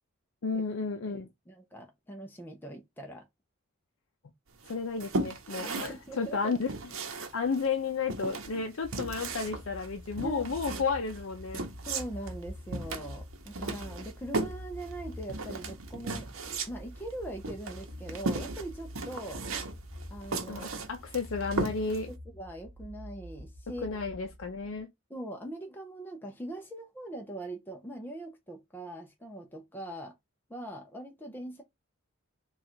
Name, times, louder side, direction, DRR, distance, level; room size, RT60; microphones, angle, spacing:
voice 1, 0.4-1.3 4.7-6.7 7.3-11.6 20.5-22.1 23.8-24.9, left 4 dB, 70° left, 0.5 m, -32 dB
voice 2, 1.1-3.2 5.7-6.6 10.2-10.6 11.9-16.3 16.7-19.4 20.1-20.8 22.1-23.9 25.1-30.1 30.5-31.6, right 1 dB, 10° left, 0.6 m, -41 dB
sound 1, 4.6-22.1, right 3 dB, 75° right, 0.8 m, -37 dB
sound 2, 8.8-24.8, left 1 dB, 30° left, 1.5 m, -46 dB
3.8 x 2.4 x 4.3 m
head